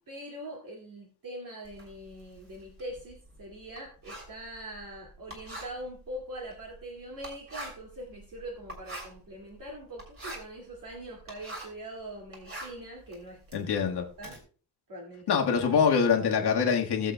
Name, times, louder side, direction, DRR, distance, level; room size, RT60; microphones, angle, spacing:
voice 1, 0.1-13.9 14.2-14.4 14.9-15.8, right 1 dB, 55° right, 2.3 m, -43 dB
Writing, 1.6-11.9 12.2-14.4, right 1 dB, 35° right, 3.2 m, -45 dB
voice 2, 13.5-14.0 15.3-17.1, left 6 dB, 80° left, 1.6 m, -24 dB
19.5 x 7.3 x 2.2 m
wide cardioid pair, 145°, 39 cm